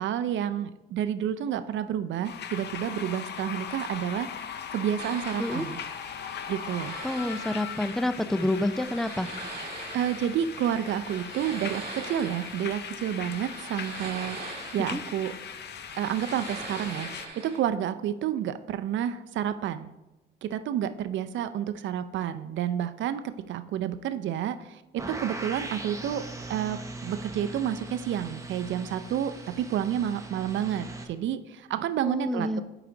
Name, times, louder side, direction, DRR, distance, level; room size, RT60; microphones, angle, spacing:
voice 1, 0.0-4.3 4.7-5.8 6.5-7.0 9.9-14.4 14.7-15.3 16.0-17.1 17.4-19.9 20.4-24.8 25.1-26.2 26.5-32.6, right 10 dB, 70° right, 12 dB, 0.5 m, -30 dB
sound 1, 2.2-17.3, left 8 dB, 60° left, 0.6 m, -39 dB
sound 2, 5.0-17.6, right 3 dB, 50° right, 1.8 m, -42 dB
voice 2, 7.0-9.3 14.9-15.0 32.0-32.6, left 1 dB, ahead, 11 dB, 0.4 m, -28 dB
sound 3, 25.0-31.1, right 2 dB, 15° right, 0.9 m, -40 dB
7.8 x 4.9 x 3.9 m, 0.99 s
cardioid pair, 90°, 20 cm